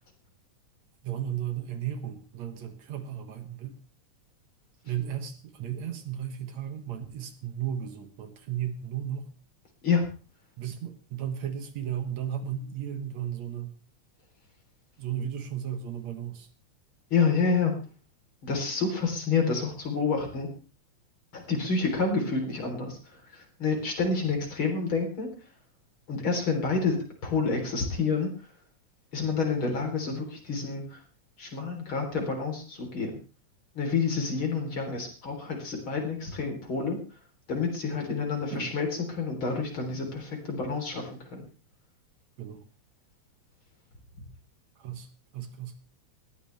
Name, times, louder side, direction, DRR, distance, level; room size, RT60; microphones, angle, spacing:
voice 1, 1.0-3.8 4.8-9.3 10.6-13.7 15.0-16.5 38.3-38.7 42.4-42.6 44.8-45.1 45.3-45.8, right 9 dB, 70° right, 8 dB, 2.6 m, -35 dB
voice 2, 17.1-17.7 18.4-20.5 21.3-23.0 23.3-25.3 26.1-27.0 27.2-28.3 29.1-31.0 31.4-33.2 33.8-37.0 37.5-41.5, left 4 dB, 40° left, 3 dB, 4.4 m, -28 dB
19.5 x 14.5 x 3.4 m, 0.34 s
omnidirectional pair, 3.4 m